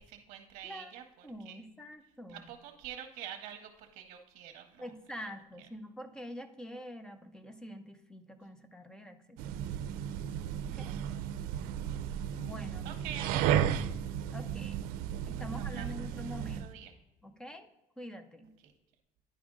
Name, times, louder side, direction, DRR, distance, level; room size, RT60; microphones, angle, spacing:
voice 1, 0.0-1.6 2.3-4.9 5.6-5.7 11.3-12.0 12.8-13.6 15.4-16.0 16.5-16.9 18.6-18.7, right 9 dB, 60° right, 3 dB, 0.8 m, -46 dB
voice 2, 0.6-1.0 1.2-2.5 4.8-9.6 10.6-11.0 12.3-13.1 14.3-14.8 15.3-16.8 17.2-17.7 18.0-18.5, equal, 5° left, 10 dB, 0.5 m, -46 dB
sound 1, 9.4-16.7, right 10 dB, 90° right, 0.4 m, -34 dB
10.0 x 5.0 x 3.6 m, 0.99 s
cardioid pair, 175°, 15 cm